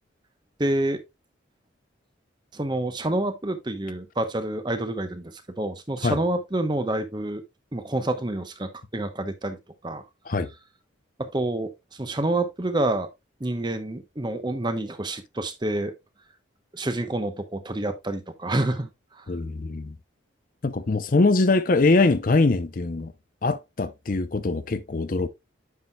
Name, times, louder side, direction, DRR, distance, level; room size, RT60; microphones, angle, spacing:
voice 1, 0.6-1.0 2.5-7.4 7.7-9.6 9.8-10.0 11.2-13.1 13.4-15.9 16.7-18.9 19.2-19.3, right 1 dB, 25° right, 0.8 m, -28 dB
voice 2, 19.3-19.9 20.6-23.1 23.4-25.3, left 3 dB, 45° left, 0.5 m, -22 dB
9.4 x 6.2 x 2.3 m
head